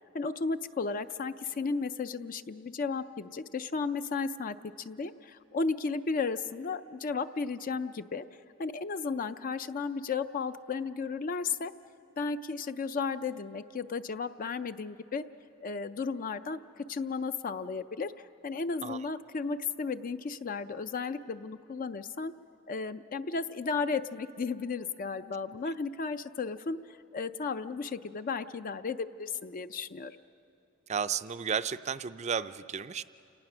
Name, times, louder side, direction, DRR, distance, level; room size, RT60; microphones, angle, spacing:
voice 1, 0.1-8.2 8.6-11.7 12.2-15.2 15.6-18.1 18.4-22.3 22.7-30.2, left 4 dB, 40° left, 11 dB, 0.4 m, -34 dB
voice 2, 30.9-33.0, right 7 dB, 35° right, 13 dB, 0.4 m, -33 dB
29.5 x 18.5 x 6.1 m, 2.7 s
head